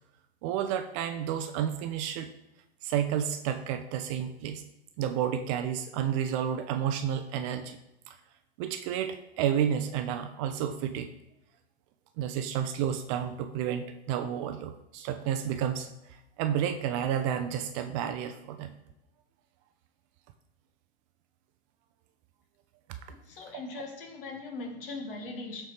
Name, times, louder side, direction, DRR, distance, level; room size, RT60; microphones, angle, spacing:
voice 1, 0.4-2.3 2.8-4.6 5.0-7.8 8.1-8.2 8.6-11.1 12.2-15.9 16.4-18.7 23.5-23.6, right 9 dB, 30° right, 8 dB, 0.5 m, -31 dB
voice 2, 23.1-25.7, left 3 dB, 55° left, 3 dB, 1.9 m, -40 dB
13.0 x 4.4 x 3.4 m, 0.88 s
hypercardioid pair, 130°, 32 cm